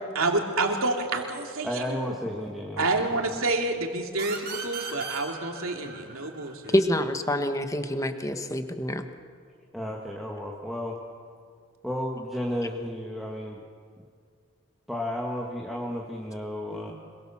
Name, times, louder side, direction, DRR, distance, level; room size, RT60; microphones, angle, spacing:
voice 1, 0.1-2.2 2.8-6.7 16.7-16.9, right 2 dB, 70° right, 3 dB, 2.9 m, -28 dB
voice 2, 1.6-2.9 9.7-11.0 11.8-13.6 14.9-16.9, left 1 dB, ahead, -2 dB, 1.9 m, -32 dB
sound 1, 4.2-7.6, right 5 dB, 45° right, 4.2 m, -38 dB
voice 3, 6.7-9.1, left 1 dB, 15° left, 7 dB, 1.4 m, -26 dB
26.0 x 22.5 x 7.3 m, 2.1 s
head